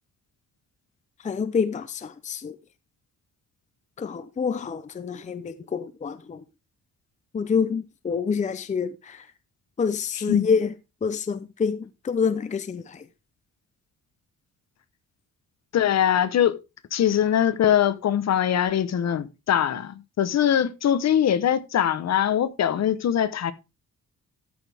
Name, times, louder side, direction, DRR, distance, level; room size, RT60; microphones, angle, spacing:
voice 1, 1.2-2.6 4.0-6.4 7.3-9.3 9.8-10.8 11.0-13.1, left 6 dB, 25° left, 0.6 m, -27 dB
voice 2, 15.7-16.6 16.9-23.5, left 10 dB, 55° left, 1.0 m, -22 dB
14.0 x 6.3 x 3.5 m
cardioid pair, 145°, 32 cm